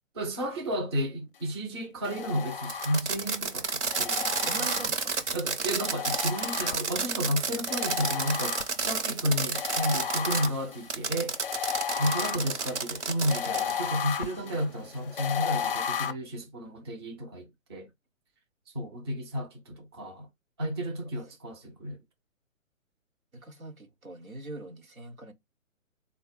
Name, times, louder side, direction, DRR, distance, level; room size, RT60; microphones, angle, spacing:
voice 1, 0.1-4.3 5.3-11.3 12.0-17.9 18.7-20.3 20.6-22.0, equal, 20° right, 0.6 m, -32 dB
sound 1, 2.0-3.3 3.9-5.2 5.8-7.1 7.7-9.0 9.5-16.1, left 8 dB, 45° left, 0.5 m, -34 dB
Fireworks, 2.6-10.5 10.9-13.8, right 5 dB, 60° right, 0.9 m, -31 dB
voice 2, 4.3-5.7 23.3-25.3, right 2 dB, 85° right, 1.2 m, -43 dB
3.8 x 2.2 x 3.8 m
figure-of-eight pair, 135°, 41 cm